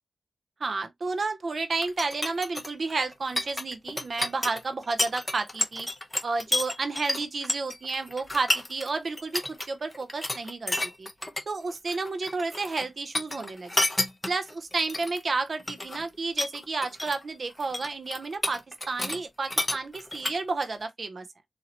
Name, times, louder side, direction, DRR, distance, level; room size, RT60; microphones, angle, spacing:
voice 1, 0.6-5.9 6.2-11.1 11.5-13.8 14.3-21.3, right 3 dB, 50° right, 0.6 m, -31 dB
sound 1, 1.8-8.9 9.2-9.7 9.9-11.4 11.7-12.9 13.1-15.2 15.6-16.1 16.4-17.2 17.5-19.2 19.5-20.7, left 1 dB, 15° left, 0.6 m, -30 dB
4.0 x 2.8 x 2.8 m
wide cardioid pair, 155°, 0 cm